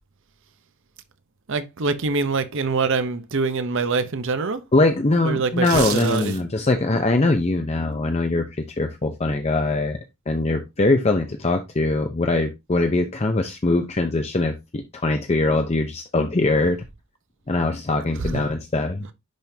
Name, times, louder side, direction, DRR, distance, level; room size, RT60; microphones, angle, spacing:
voice 1, 1.5-4.6 5.2-6.3 18.2-18.4, right 4 dB, 55° right, 0.7 m, -24 dB
voice 2, 4.7-10.0 10.3-16.8 17.5-19.1, left 2 dB, 30° left, 0.6 m, -22 dB
sound 1, 5.5-6.7 7.1-7.2, right 8 dB, 75° right, 1.2 m, -31 dB
10.5 x 3.7 x 2.8 m
head